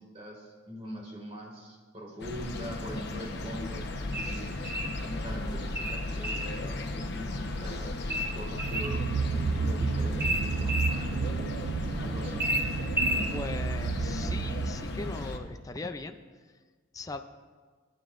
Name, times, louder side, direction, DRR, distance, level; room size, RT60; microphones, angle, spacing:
voice 1, 0.0-4.6 5.0-9.1 9.5-11.7 12.0-12.4 13.1-13.3, equal, 30° right, -1 dB, 2.1 m, -42 dB
sound 1, 2.2-15.4, left 2 dB, 55° left, 1.0 m, -36 dB
sound 2, 4.1-5.0 5.8-6.5 8.1-9.0 10.2-11.0 12.4-13.3, right 1 dB, 10° right, 0.7 m, -31 dB
sound 3, 8.6-15.1, right 4 dB, 65° right, 0.4 m, -32 dB
voice 2, 13.3-16.2 16.9-17.2, left 3 dB, 15° left, 7 dB, 0.4 m, -39 dB
26.0 x 9.4 x 2.5 m, 1.5 s
head